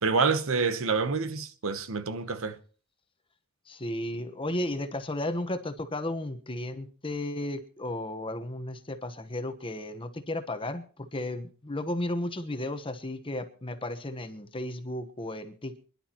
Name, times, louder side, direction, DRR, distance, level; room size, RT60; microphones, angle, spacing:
voice 1, 0.0-2.6, right 4 dB, 65° right, 1.0 m, -27 dB
voice 2, 3.7-15.9, left 1 dB, 25° left, 1.1 m, -34 dB
26.5 x 11.0 x 3.0 m
head